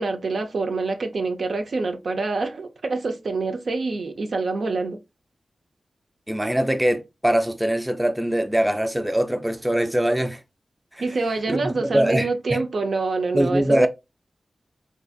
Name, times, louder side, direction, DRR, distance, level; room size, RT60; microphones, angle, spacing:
voice 1, 0.0-5.0 11.0-13.9, right 3 dB, 75° right, 0.6 m, -26 dB
voice 2, 6.3-10.4 11.5-12.6 13.3-13.9, right 1 dB, 10° right, 0.5 m, -22 dB
3.8 x 2.6 x 2.3 m
cardioid pair, 55°, 0 cm